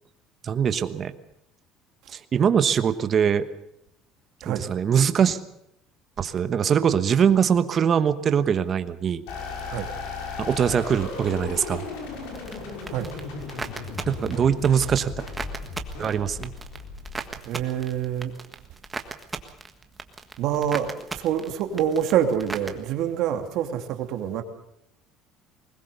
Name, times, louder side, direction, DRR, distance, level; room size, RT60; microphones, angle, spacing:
voice 1, 0.4-1.1 2.1-3.4 4.4-5.4 6.2-9.2 10.4-11.8 14.1-15.1 16.0-16.5, right 7 dB, 35° right, 11 dB, 1.1 m, -22 dB
sound 1, 9.3-17.7, left 3 dB, 90° left, 6.0 m, -36 dB
sound 2, 12.3-22.7, right 3 dB, 15° right, 1.5 m, -38 dB
voice 2, 17.5-18.3 20.4-24.4, right 9 dB, 60° right, 6 dB, 2.5 m, -26 dB
21.0 x 19.0 x 6.8 m, 0.78 s
cardioid pair, 140°, 0 cm